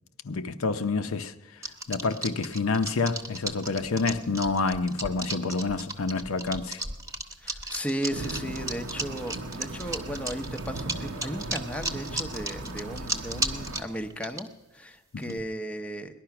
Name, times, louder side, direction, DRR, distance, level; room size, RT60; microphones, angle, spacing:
voice 1, 0.2-1.3 1.9-6.8 15.1-15.4, left 4 dB, 70° left, 0.6 m, -28 dB
sound 1, 1.6-14.4 15.2-15.4, right 2 dB, 15° right, 1.0 m, -34 dB
voice 2, 7.4-16.2, equal, 5° left, 0.7 m, -35 dB
sound 2, 8.1-13.8, right 1 dB, 85° right, 1.0 m, -37 dB
18.5 x 11.5 x 5.9 m
head